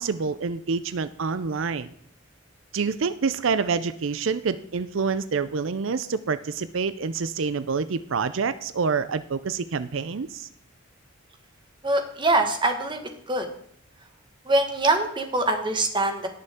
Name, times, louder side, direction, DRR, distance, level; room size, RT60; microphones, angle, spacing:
voice 1, 0.0-1.9 2.7-10.5, right 5 dB, 80° right, 13 dB, 0.5 m, -27 dB
voice 2, 11.8-13.0 13.3-13.5 14.4-16.3, right 2 dB, 25° right, 5 dB, 1.6 m, -23 dB
17.5 x 6.7 x 3.6 m, 0.69 s
head